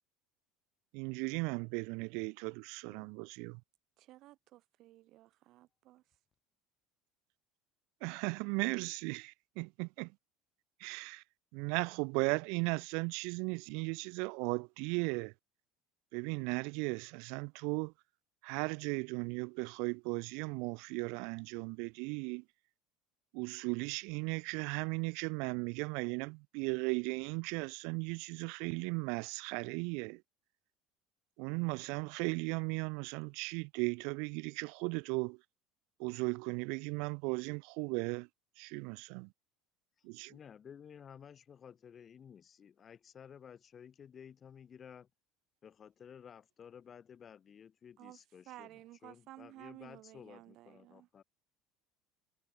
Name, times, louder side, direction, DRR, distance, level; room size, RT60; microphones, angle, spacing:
voice 1, 0.9-3.6 8.0-10.1 10.8-11.2 11.5-15.3 16.1-17.9 18.4-22.4 23.3-30.2 31.4-35.4 36.0-38.3 38.6-39.3 40.0-40.4, right 34 dB, 70° right, 1.4 m, -36 dB
voice 2, 4.0-6.0 48.0-48.2 48.5-51.1, right 16 dB, 50° right, 5.8 m, -54 dB
voice 3, 40.3-45.1 45.6-48.7 49.0-51.2, left 8 dB, 30° left, 4.6 m, -54 dB
cardioid pair, 145°, 0 cm